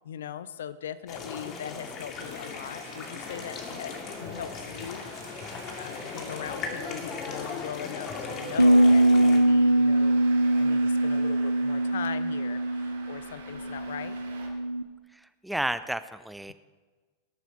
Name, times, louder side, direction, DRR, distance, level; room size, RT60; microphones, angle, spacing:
voice 1, 0.0-5.1 5.8-10.3 10.6-14.2, left 9 dB, 60° left, 15 dB, 0.6 m, -40 dB
sound 1, 1.1-9.4, left 4 dB, 35° left, 2.4 m, -38 dB
Traffic noise roadway noise, 2.1-14.5, right 4 dB, 65° right, 3.0 m, -48 dB
sound 2, 8.6-14.8, right 1 dB, 90° right, 0.4 m, -22 dB
voice 2, 15.1-16.5, right 1 dB, 5° right, 14 dB, 0.6 m, -32 dB
20.0 x 11.5 x 4.2 m, 1.3 s
figure-of-eight pair, 90°, 0 cm